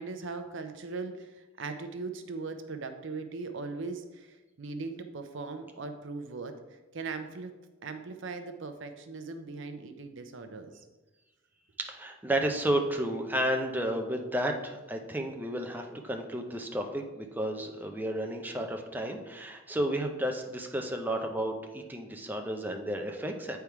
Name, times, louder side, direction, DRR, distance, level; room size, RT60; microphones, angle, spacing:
voice 1, 0.0-7.5 7.8-10.7, right 3 dB, 65° right, 7 dB, 0.7 m, -39 dB
voice 2, 11.9-23.6, right 1 dB, 10° right, 3 dB, 0.6 m, -32 dB
8.5 x 3.5 x 4.6 m, 1.1 s
head